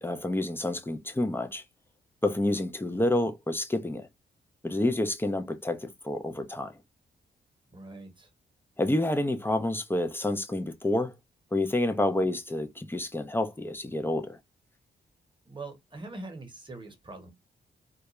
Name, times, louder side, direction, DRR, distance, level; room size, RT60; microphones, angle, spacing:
voice 1, 0.0-1.6 2.2-4.1 4.6-6.7 8.8-11.1 11.5-14.4, left 1 dB, 10° left, 0.5 m, -28 dB
voice 2, 7.7-8.3 15.4-17.3, right 2 dB, 25° right, 1.0 m, -43 dB
2.4 x 2.1 x 2.9 m
cardioid pair, 65°, 20 cm